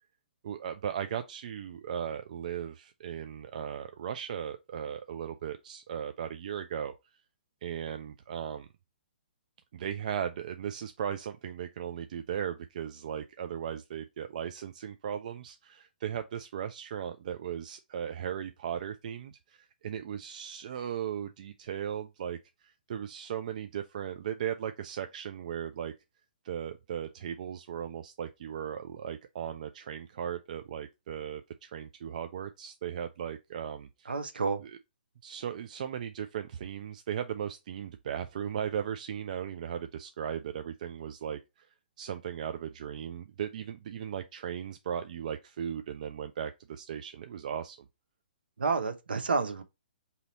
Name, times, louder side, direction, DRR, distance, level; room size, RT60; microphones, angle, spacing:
voice 1, 0.4-6.9 7.6-8.7 9.7-25.9 26.4-34.1 34.6-34.8 35.2-41.7 42.0-47.8, right 9 dB, 45° right, 0.3 m, -37 dB
voice 2, 34.1-34.6 48.6-49.6, right 4 dB, 70° right, 0.7 m, -29 dB
4.0 x 2.8 x 3.9 m
figure-of-eight pair, 125°, 5 cm